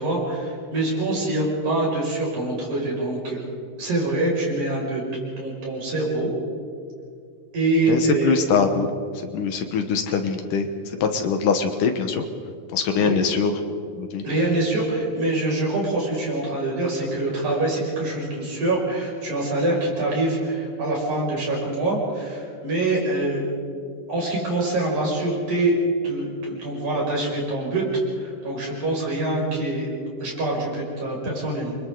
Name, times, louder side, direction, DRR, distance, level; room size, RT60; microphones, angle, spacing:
voice 1, 0.0-3.4 3.8-5.0 5.4-6.3 7.5-8.4 13.0-13.2 14.2-23.5 24.1-25.7 26.0-27.8 28.2-29.9 30.2-31.7, right 2 dB, 55° right, -4 dB, 7.6 m, -25 dB
voice 2, 7.9-8.9 9.3-10.7 11.0-12.2 12.7-13.5 13.9-14.2, left 6 dB, 70° left, 6 dB, 2.6 m, -23 dB
29.0 x 24.5 x 3.9 m, 2.3 s
omnidirectional pair, 4.0 m